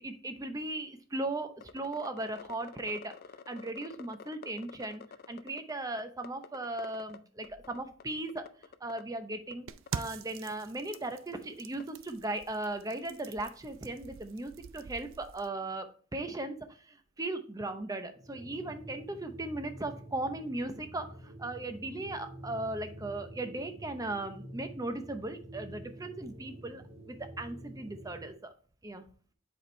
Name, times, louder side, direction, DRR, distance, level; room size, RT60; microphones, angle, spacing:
voice 1, 0.0-3.1 3.5-8.5 8.8-28.5 28.8-29.1, right 2 dB, 20° right, 8 dB, 0.6 m, -37 dB
sound 1, 1.6-5.7 6.0-7.2 7.4-8.0 8.3-9.0 9.5-9.6 9.9-10.1 10.5-10.6 10.9-11.0 11.8-11.9, left 6 dB, 50° left, 0.4 m, -48 dB
sound 2, 9.7-15.5, right 6 dB, 85° right, 0.4 m, -45 dB
sound 3, 18.1-28.4, right 1 dB, 35° right, 3.4 m, -48 dB
7.8 x 4.5 x 3.2 m, 0.43 s
head